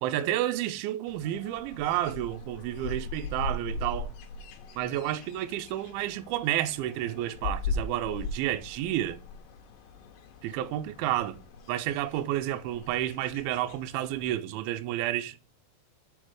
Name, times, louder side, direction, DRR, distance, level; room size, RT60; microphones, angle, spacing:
voice 1, 0.0-4.1 4.8-9.2 10.4-11.4 11.7-15.4, right 13 dB, 80° right, 2.2 m, -30 dB
sound 1, 1.1-14.3, left 3 dB, 75° left, 2.1 m, -39 dB
6.5 x 4.2 x 4.6 m
omnidirectional pair, 4.7 m